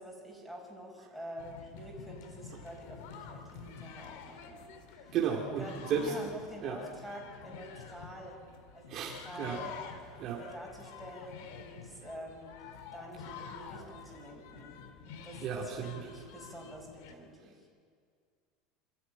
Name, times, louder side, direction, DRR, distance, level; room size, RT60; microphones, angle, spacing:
voice 1, 0.0-5.2 5.6-8.4 8.7-9.7 10.1-14.8 15.1-17.7, equal, ahead, -1 dB, 5.2 m, -47 dB
sound 1, 1.4-17.1, left 6 dB, 70° left, 2.4 m, -49 dB
voice 2, 5.1-6.3 6.6-6.8 8.9-9.6 10.2-10.4 15.4-16.0, right 7 dB, 40° right, 0 dB, 2.1 m, -33 dB
27.0 x 14.0 x 8.9 m, 2.1 s
cardioid pair, 165°, 0 cm